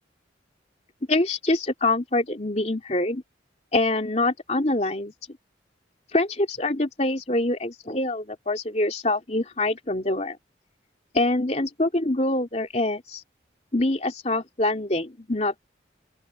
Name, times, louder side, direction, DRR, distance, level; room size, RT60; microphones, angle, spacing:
voice 1, 1.1-3.2 3.7-5.1 6.1-10.4 11.1-13.2 13.7-15.6, left 2 dB, 35° left, 3.1 m, -25 dB
open air
head